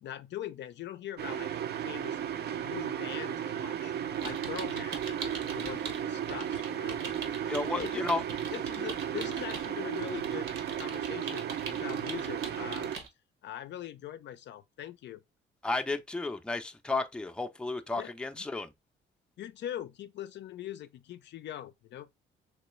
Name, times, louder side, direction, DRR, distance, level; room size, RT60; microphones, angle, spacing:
voice 1, 0.0-1.5 1.8-2.2 2.6-3.9 4.2-8.2 8.5-13.0 13.4-15.2 18.0-18.1 19.4-22.1, left 11 dB, 65° left, 0.4 m, -42 dB
sound 1, 1.2-13.0, right 9 dB, 55° right, 0.5 m, -34 dB
sound 2, 4.1-6.0 6.3-13.1, right 5 dB, 80° right, 1.0 m, -42 dB
voice 2, 7.5-8.2 15.6-18.7, left 2 dB, 5° left, 0.4 m, -33 dB
3.0 x 3.0 x 3.0 m
cardioid pair, 90°, 20 cm